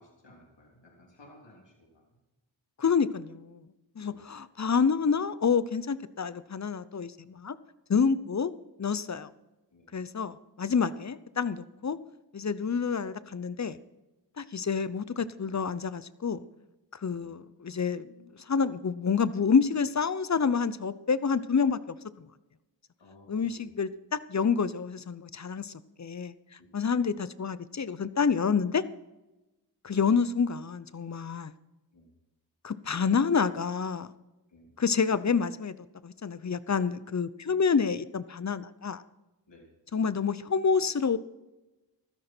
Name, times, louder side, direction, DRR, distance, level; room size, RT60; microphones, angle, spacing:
voice 1, 0.0-2.2 4.0-4.2 9.7-9.9 17.1-17.2 23.0-23.9 31.9-32.1 34.5-34.7 39.5-39.7, left 1 dB, 70° left, -1 dB, 3.3 m, -56 dB
voice 2, 2.8-3.6 4.0-7.5 7.9-8.5 8.8-9.3 9.9-12.0 12.3-13.8 14.4-16.5 17.0-22.3 23.3-25.7 26.0-26.3 26.7-28.8 29.8-31.5 32.6-34.1 34.8-35.7 36.0-39.0 39.9-41.2, left 6 dB, 40° left, 16 dB, 0.7 m, -28 dB
15.5 x 13.0 x 4.5 m, 1.0 s
cardioid pair, 45°, 44 cm